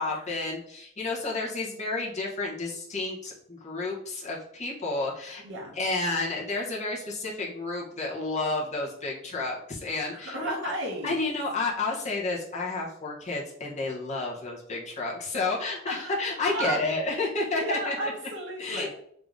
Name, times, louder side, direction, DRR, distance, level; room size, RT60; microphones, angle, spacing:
voice 1, 0.0-5.4 5.7-10.7 11.0-18.1 18.6-18.9, left 3 dB, 35° left, -3 dB, 1.0 m, -31 dB
voice 2, 5.4-5.7 10.1-11.2 15.9-16.2 16.5-16.8 17.6-18.9, right 1 dB, 60° right, -1 dB, 1.1 m, -33 dB
3.7 x 2.8 x 3.7 m, 0.66 s
head